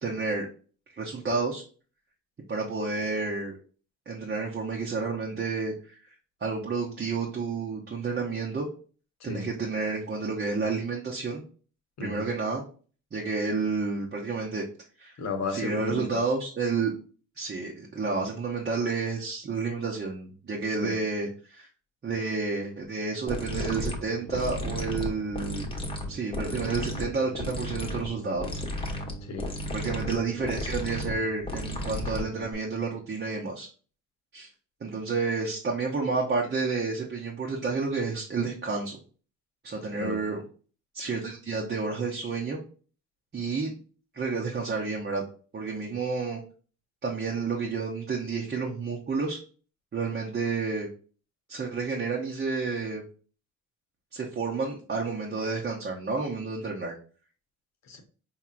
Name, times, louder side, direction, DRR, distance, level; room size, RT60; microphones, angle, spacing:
voice 1, 0.0-0.5 0.9-1.6 2.5-3.6 4.1-6.1 6.4-8.7 9.2-11.4 12.0-12.6 13.1-14.6 15.0-15.2 15.5-16.9 17.4-21.7 22.0-25.7 26.1-28.6 29.7-33.7 34.3-34.5 34.8-39.0 39.6-40.4 40.9-42.6 43.3-43.7 44.1-45.2 45.5-46.4 47.0-49.4 49.9-50.9 51.5-53.0 54.1-57.0, right 4 dB, 35° right, -2 dB, 0.9 m, -30 dB
voice 2, 12.0-12.3 15.2-16.2 20.8-21.0 26.1-26.2 29.2-29.5 39.9-40.2 57.9-58.0, left 3 dB, 60° left, 5 dB, 1.1 m, -34 dB
sound 1, 23.3-32.5, left 1 dB, 15° left, 1.1 m, -34 dB
4.5 x 2.9 x 2.5 m, 0.39 s
supercardioid pair, 75°, 31 cm